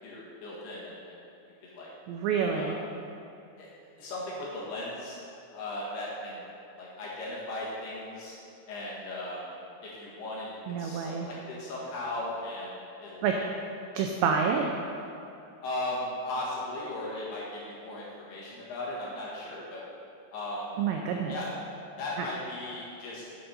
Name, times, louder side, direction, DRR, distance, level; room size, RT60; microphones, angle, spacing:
voice 1, 0.0-1.2 1.6-1.9 2.5-2.8 3.6-3.7 4.0-5.2 5.5-6.4 6.8-8.3 8.7-9.5 9.8-13.5 15.6-19.8 20.3-20.7 21.3-21.5 22.0-23.2, left 1 dB, 65° left, -6 dB, 3.2 m, -37 dB
voice 2, 2.1-2.8 10.7-11.3 13.2-13.4 14.0-14.7 20.8-21.3, right 6 dB, 90° right, 2 dB, 2.5 m, -28 dB
10.0 x 7.7 x 4.2 m, 2.7 s
omnidirectional pair, 5.7 m